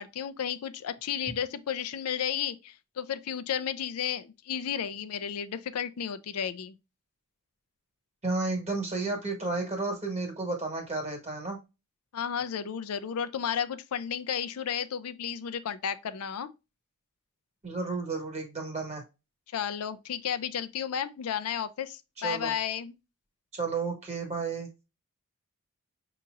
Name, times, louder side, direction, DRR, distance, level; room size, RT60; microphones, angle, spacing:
voice 1, 0.0-6.7 12.1-16.5 19.5-22.9, left 8 dB, 80° left, 0.4 m, -33 dB
voice 2, 8.2-11.6 17.6-19.0 22.2-22.5 23.5-24.7, right 3 dB, 30° right, 1.5 m, -32 dB
5.8 x 2.9 x 2.5 m
head